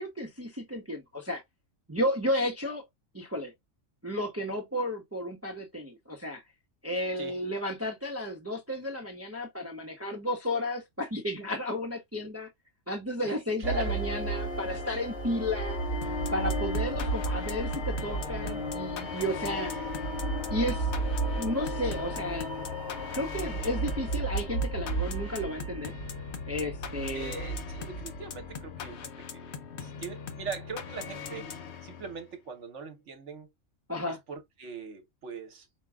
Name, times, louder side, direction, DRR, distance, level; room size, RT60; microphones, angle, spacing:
voice 1, 0.0-1.4 1.9-2.8 3.1-3.5 4.0-6.4 6.8-12.5 12.9-15.8 16.3-19.7 20.5-20.9 21.4-22.5 23.1-25.9 26.5-27.3 33.9-34.2, left 1 dB, 15° right, 0.8 m, -33 dB
voice 2, 13.2-14.0 19.5-19.6 27.1-31.5 31.8-33.5 34.1-35.7, right 5 dB, 65° right, 1.3 m, -41 dB
sound 1, 13.6-28.9, right 2 dB, 40° left, 1.6 m, -33 dB
sound 2, 16.0-32.3, left 7 dB, 65° left, 1.0 m, -41 dB
5.2 x 2.3 x 3.4 m
omnidirectional pair, 1.3 m